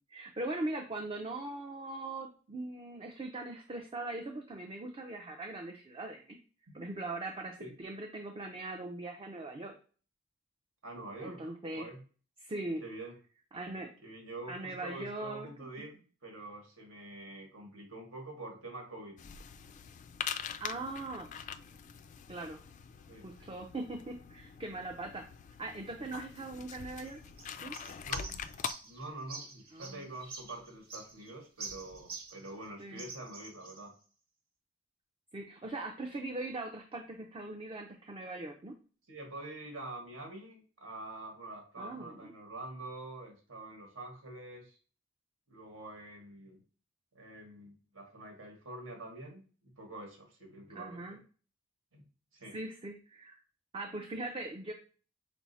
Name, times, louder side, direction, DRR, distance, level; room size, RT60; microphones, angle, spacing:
voice 1, 0.1-6.4 6.7-9.7 11.2-11.9 12.4-12.8 13.5-13.9 14.5-15.5 15.8-15.9 20.6-21.5 22.3-22.6 23.2-25.3 25.6-27.2 27.6-27.8 29.7-30.1 32.8-33.1 35.3-38.7 41.8-42.3 50.7-51.2 52.5-53.4 53.7-54.7, right 2 dB, 25° right, 3 dB, 0.5 m, -40 dB
voice 2, 10.8-12.0 12.8-13.1 14.0-19.2 23.1-23.5 26.5-26.6 28.0-28.5 28.8-33.9 39.1-44.8 45.5-46.6 47.1-49.4 49.8-51.2 51.9-52.0 52.3-52.6, right 2 dB, 75° right, 1 dB, 1.6 m, -46 dB
sound 1, 19.2-28.7, left 7 dB, 40° left, 0.3 m, -43 dB
sound 2, 27.0-32.7 33.0-33.9, right 4 dB, 50° right, 1.3 m, -47 dB
6.0 x 2.0 x 4.1 m, 0.39 s
head